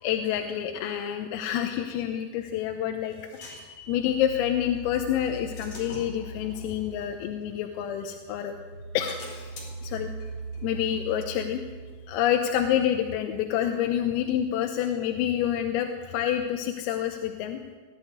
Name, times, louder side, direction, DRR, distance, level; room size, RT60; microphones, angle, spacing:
voice 1, 0.0-8.5 9.0-9.5 9.8-10.1 10.6-11.6 12.1-17.8, left 10 dB, 85° left, 5 dB, 3.7 m, -28 dB
sound 1, 2.4-4.6 5.2-8.3 8.7-12.1, left 2 dB, 40° left, 5.4 m, -48 dB
sound 2, 3.8-7.6 8.0-12.6, right 2 dB, 35° right, 8.1 m, -41 dB
21.5 x 13.5 x 9.4 m, 1.5 s
omnidirectional pair, 5.8 m